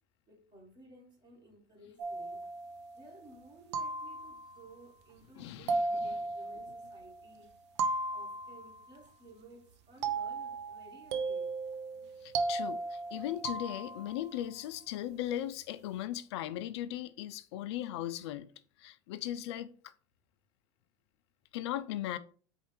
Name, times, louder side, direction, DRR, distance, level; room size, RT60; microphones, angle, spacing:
voice 1, 0.3-2.4 2.9-7.5 8.1-11.5, right 1 dB, 30° right, 2.4 m, -56 dB
sound 1, 2.0-3.1 3.7-4.7 5.7-7.2 7.8-9.0 10.0-14.3, right 3 dB, 75° right, 0.6 m, -36 dB
voice 2, 5.4-6.2 12.2-18.5 18.8-19.7 21.5-22.2, left 12 dB, 70° left, 0.4 m, -38 dB
4.4 x 2.5 x 4.5 m
hypercardioid pair, 100°, 15 cm